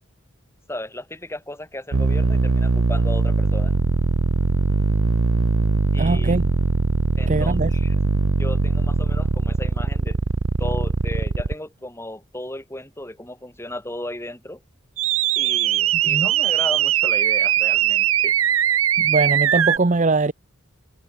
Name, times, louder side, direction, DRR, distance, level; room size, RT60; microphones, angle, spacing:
voice 1, 0.7-3.7 5.9-6.4 7.2-7.9 8.4-10.2 10.6-14.6 15.4-18.4, left 1 dB, 15° left, 7.1 m, -35 dB
sound 1, 1.9-11.5 15.0-19.8, right 5 dB, 85° right, 0.8 m, -20 dB
voice 2, 6.0-6.5 7.3-7.7 16.1-16.3 19.0-20.3, right 3 dB, 35° right, 0.7 m, -21 dB
head